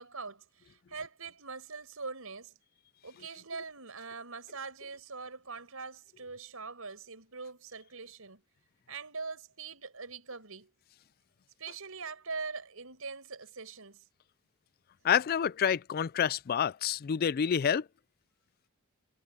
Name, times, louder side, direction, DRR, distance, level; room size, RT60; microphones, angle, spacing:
voice 1, 0.0-2.6 3.0-8.4 8.9-10.7 11.6-14.0, right 4 dB, 85° right, 5.3 m, -43 dB
voice 2, 15.0-17.9, left 8 dB, 45° left, 0.4 m, -28 dB
head